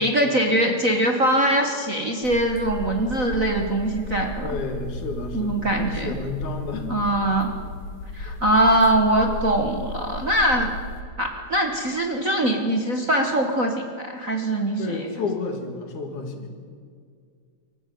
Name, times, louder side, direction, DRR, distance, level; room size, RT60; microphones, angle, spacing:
voice 1, 0.0-4.5 5.3-6.1 6.9-7.5 8.1-10.7 11.2-14.8, right 1 dB, 40° right, 2 dB, 1.2 m, -22 dB
sound 1, 2.2-11.0, left 1 dB, 50° left, 3.0 m, -35 dB
voice 2, 4.4-6.9 8.3-8.4 14.8-16.5, left 3 dB, 80° left, 4 dB, 3.8 m, -31 dB
24.5 x 14.5 x 9.3 m, 2.1 s
omnidirectional pair, 3.4 m